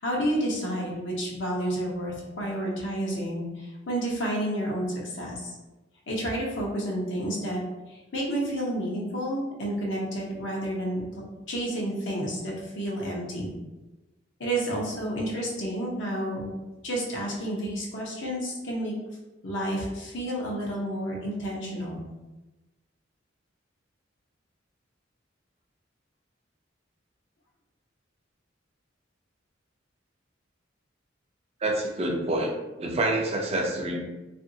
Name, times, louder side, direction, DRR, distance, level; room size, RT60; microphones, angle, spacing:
voice 1, 0.0-5.6 6.1-7.6 7.9-11.1 11.5-13.5 14.4-16.5 16.8-18.9 19.4-22.0, right 1 dB, 75° left, -3 dB, 0.7 m, -30 dB
voice 2, 31.6-32.5 32.8-34.0, right 1 dB, 35° right, 1 dB, 0.4 m, -27 dB
2.8 x 2.5 x 2.6 m, 1.1 s
head